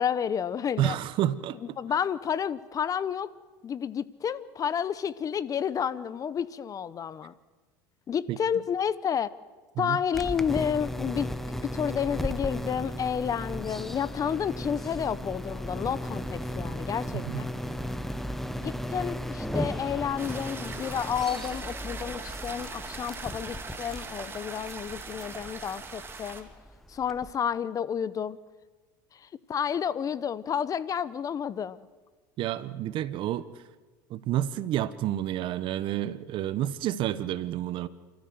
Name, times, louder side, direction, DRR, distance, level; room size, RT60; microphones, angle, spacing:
voice 1, 0.0-1.0 1.8-3.3 3.6-7.3 8.1-9.3 9.8-11.3 11.6-17.5 18.6-26.5 26.9-28.4 29.1-31.8, left 8 dB, 35° left, 17 dB, 0.9 m, -30 dB
voice 2, 0.8-1.6 8.3-8.4 9.8-10.0 17.1-17.4 32.4-33.4 34.1-37.9, right 12 dB, 50° right, 15 dB, 1.1 m, -29 dB
sound 1, 10.1-27.3, equal, 5° left, 1.2 m, -36 dB
sound 2, 20.2-26.4, right 4 dB, 20° right, 2.9 m, -41 dB
29.5 x 14.0 x 7.9 m, 1.4 s
supercardioid pair, 100°, 10 cm